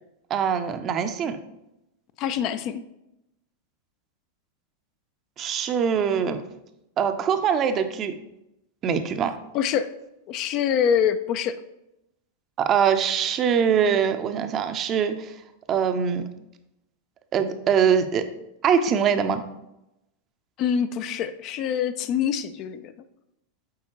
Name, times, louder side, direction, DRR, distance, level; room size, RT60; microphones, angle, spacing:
voice 1, 0.3-1.4 5.4-6.4 7.0-8.1 8.8-9.4 12.6-15.3 15.7-16.3 17.3-18.2 18.6-19.4, right 7 dB, 30° right, 9 dB, 0.5 m, -23 dB
voice 2, 2.2-2.8 9.5-9.9 10.3-11.6 20.6-22.9, left 8 dB, 40° left, 11 dB, 0.3 m, -25 dB
8.5 x 4.2 x 3.0 m, 0.88 s
figure-of-eight pair, 90°, 0 cm